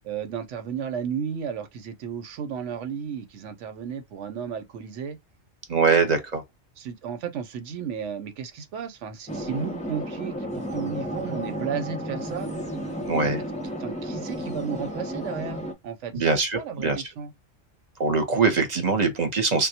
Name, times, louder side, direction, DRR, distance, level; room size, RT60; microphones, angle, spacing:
voice 1, 0.0-5.2 6.8-12.5 13.1-13.3 13.8-16.1 16.5-17.3, right 7 dB, 75° right, 1.0 m, -33 dB
voice 2, 5.7-6.4 13.1-13.4 16.1-17.0 18.0-19.7, right 4 dB, 40° right, 0.9 m, -22 dB
sound 1, 9.3-15.7, equal, 10° left, 0.5 m, -32 dB
3.6 x 2.2 x 2.7 m
omnidirectional pair, 1.3 m